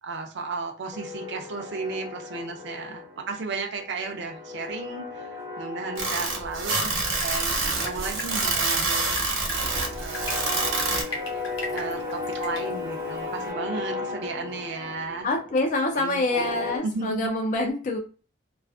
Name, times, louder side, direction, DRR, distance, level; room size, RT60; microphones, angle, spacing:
voice 1, 0.0-9.7 10.0-10.9 11.3-15.3 16.0-17.3, right 3 dB, 60° right, 3 dB, 0.5 m, -34 dB
sound 1, 0.9-3.5 3.7-7.4 7.7-16.8, left 3 dB, 15° right, 0.6 m, -36 dB
sound 2, 6.0-11.0, right 3 dB, 75° right, 0.8 m, -26 dB
Drip, 6.9-13.5, left 2 dB, 75° left, 0.8 m, -40 dB
voice 2, 15.2-18.0, left 2 dB, 40° left, 2 dB, 0.4 m, -26 dB
2.4 x 2.3 x 2.3 m, 0.36 s
head